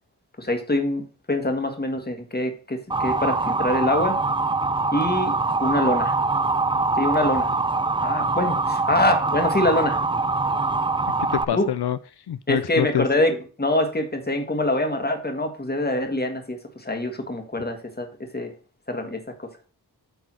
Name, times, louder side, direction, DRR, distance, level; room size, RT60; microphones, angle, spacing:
voice 1, 0.4-4.2 4.9-5.3 5.6-6.2 7.0-7.5 8.0-10.0 11.5-11.7 12.5-18.1 18.3-18.5 18.9-19.5, left 1 dB, 25° left, 5 dB, 1.8 m, -24 dB
Motor vehicle (road) / Siren, 2.9-11.4, right 3 dB, 15° right, 0.3 m, -23 dB
voice 2, 11.3-13.1, left 11 dB, 80° left, 13 dB, 0.5 m, -26 dB
8.3 x 4.0 x 6.2 m, 0.38 s
wide cardioid pair, 80°, 39 cm